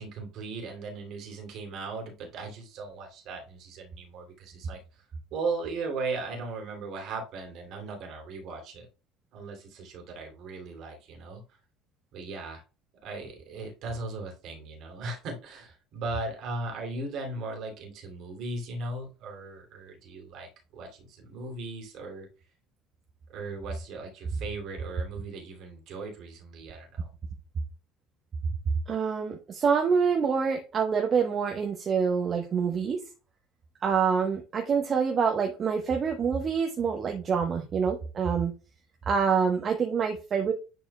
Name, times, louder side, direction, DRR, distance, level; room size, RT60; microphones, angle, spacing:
voice 1, 0.0-4.8 5.3-8.9 9.3-11.4 12.1-12.6 13.0-22.3 23.3-27.1, right 3 dB, 55° right, 2.8 m, -37 dB
voice 2, 28.9-33.0 33.8-38.5 39.1-40.5, right 6 dB, 40° right, 1.2 m, -26 dB
10.5 x 4.3 x 2.3 m
figure-of-eight pair, 60°, 0 cm